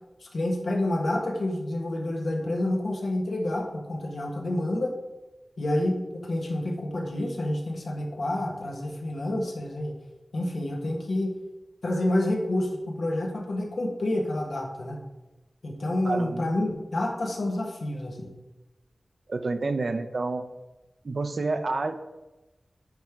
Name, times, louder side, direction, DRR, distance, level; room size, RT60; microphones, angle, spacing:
voice 1, 0.2-4.9 5.6-10.0 10.3-11.3 11.8-15.0 15.6-18.3, left 1 dB, 85° left, 0 dB, 1.3 m, -28 dB
voice 2, 16.0-16.5 19.3-20.5 21.0-21.9, right 3 dB, 70° right, 7 dB, 0.6 m, -29 dB
9.5 x 3.7 x 4.5 m, 1.0 s
wide cardioid pair, 80°, 0 cm